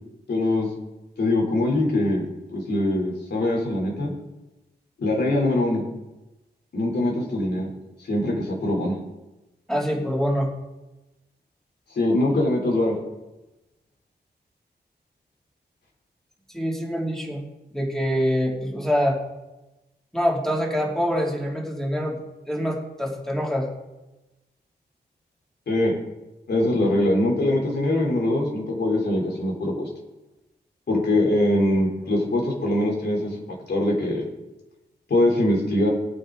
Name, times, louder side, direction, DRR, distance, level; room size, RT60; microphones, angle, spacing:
voice 1, 0.3-0.7 1.2-2.2 2.5-4.1 5.0-5.8 6.7-7.7 8.1-9.0 12.0-13.0 25.7-26.0 26.5-29.9 30.9-33.4 33.7-34.2 35.1-35.9, left 1 dB, 75° left, -1 dB, 3.7 m, -22 dB
voice 2, 9.7-10.5 16.5-17.4 17.7-19.2 20.1-23.7, equal, ahead, -2 dB, 2.9 m, -25 dB
20.0 x 8.8 x 4.0 m, 1.0 s
wide cardioid pair, 105°, 17 cm